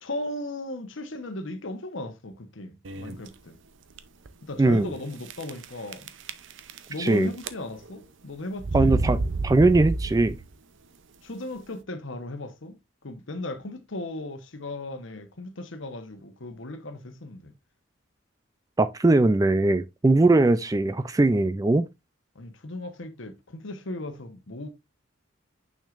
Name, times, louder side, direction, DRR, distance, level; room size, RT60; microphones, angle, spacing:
voice 1, 0.0-3.6 4.4-6.1 6.9-9.0 11.2-17.5 22.3-24.7, left 1 dB, 65° left, 1.1 m, -36 dB
sound 1, 2.8-3.3 3.9-4.0 4.3-4.4 5.3-5.7 5.9-7.1 7.4-7.9 8.6-10.5, right 3 dB, 65° right, 0.6 m, -29 dB
voice 2, 4.6-4.9 7.0-7.3 8.7-10.4 18.8-21.8, right 2 dB, 15° right, 0.3 m, -20 dB
6.5 x 6.1 x 2.5 m
head